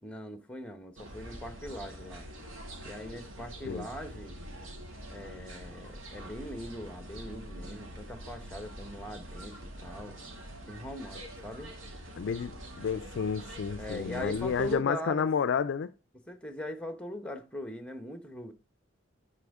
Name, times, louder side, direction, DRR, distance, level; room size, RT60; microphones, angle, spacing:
voice 1, 0.0-2.3 2.8-4.3 5.1-9.6 9.8-10.2 10.7-11.7 13.8-15.3 16.3-18.5, left 1 dB, 5° left, 0.9 m, -41 dB
sound 1, 1.0-14.8, right 1 dB, 75° right, 2.2 m, -45 dB
voice 2, 12.2-15.9, left 6 dB, 60° left, 0.4 m, -30 dB
12.0 x 4.4 x 3.5 m
head